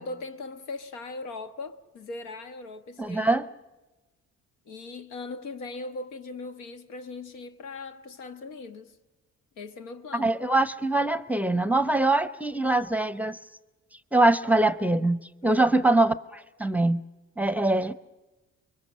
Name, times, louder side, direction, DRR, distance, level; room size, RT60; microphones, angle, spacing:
voice 1, 0.0-3.4 4.7-8.9 9.6-10.4 15.5-15.9, left 3 dB, 90° left, 1.4 m, -39 dB
voice 2, 3.0-3.4 10.1-13.4 14.1-17.0 17.4-17.9, right 2 dB, 5° right, 0.7 m, -23 dB
24.5 x 22.5 x 6.3 m
cardioid pair, 90°, 30 cm